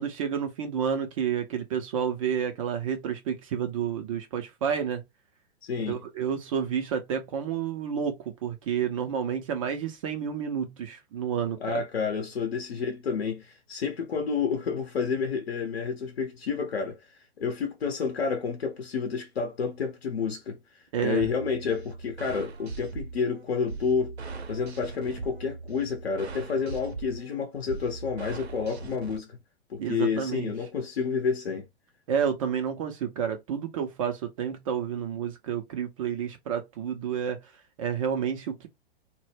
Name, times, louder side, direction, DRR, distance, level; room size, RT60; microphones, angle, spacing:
voice 1, 0.0-5.0 5.9-11.8 20.9-21.3 29.8-30.5 32.1-37.5 37.8-38.7, right 8 dB, 35° right, 0.4 m, -30 dB
voice 2, 5.6-6.0 11.6-17.0 17.4-20.6 21.0-24.1 24.5-29.3 29.7-31.6, left 5 dB, 70° left, 0.7 m, -29 dB
sound 1, 21.2-29.2, right 4 dB, 90° right, 0.6 m, -40 dB
2.0 x 2.0 x 3.2 m
figure-of-eight pair, 110°, 31 cm